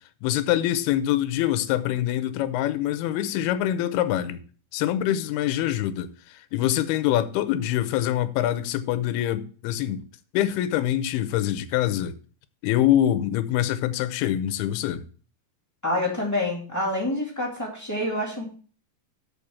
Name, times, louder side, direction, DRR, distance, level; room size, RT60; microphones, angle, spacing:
voice 1, 0.2-4.4 4.7-10.0 10.3-12.2 12.6-15.1, left 12 dB, 85° left, 2.6 m, -25 dB
voice 2, 15.8-18.4, left 1 dB, 10° left, 1.2 m, -27 dB
6.7 x 5.1 x 7.0 m
omnidirectional pair, 4.5 m